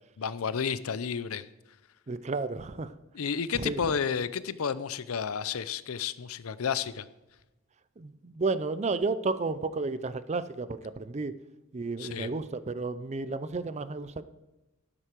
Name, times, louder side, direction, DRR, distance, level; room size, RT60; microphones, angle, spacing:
voice 1, 0.2-1.5 3.1-7.1 12.0-12.3, left 6 dB, 85° left, 16 dB, 0.6 m, -31 dB
voice 2, 2.1-2.9 3.5-3.8 8.0-11.3 11.7-14.2, right 3 dB, 30° right, 14 dB, 0.5 m, -32 dB
12.5 x 10.0 x 4.6 m, 1.0 s
head